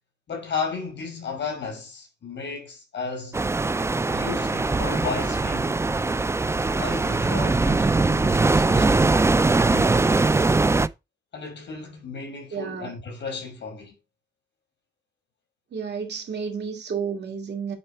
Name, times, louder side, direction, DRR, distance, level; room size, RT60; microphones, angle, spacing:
voice 1, 0.3-3.4 4.1-5.8 6.8-9.1 9.4-10.0 11.3-14.0, left 5 dB, 75° left, 5.2 m, -34 dB
sound 1, 3.3-10.9, right 3 dB, 15° right, 0.4 m, -21 dB
voice 2, 12.5-12.9 15.7-17.7, right 6 dB, 70° right, 2.6 m, -31 dB
8.9 x 4.3 x 4.4 m
cardioid pair, 105°, 18 cm